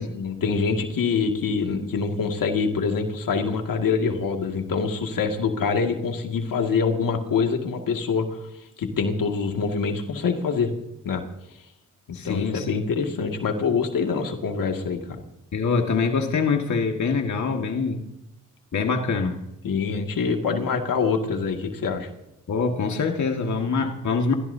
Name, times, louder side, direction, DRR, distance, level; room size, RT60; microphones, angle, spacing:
voice 1, 0.0-8.4 8.8-10.7 11.0-11.2 12.1-15.2 19.6-22.1, left 5 dB, 80° left, 4 dB, 2.2 m, -25 dB
voice 2, 12.1-12.8 15.5-18.0 18.7-19.4 22.5-24.3, left 4 dB, 60° left, 3 dB, 1.9 m, -24 dB
29.5 x 15.0 x 2.8 m, 0.88 s
cardioid pair, 65°, 33 cm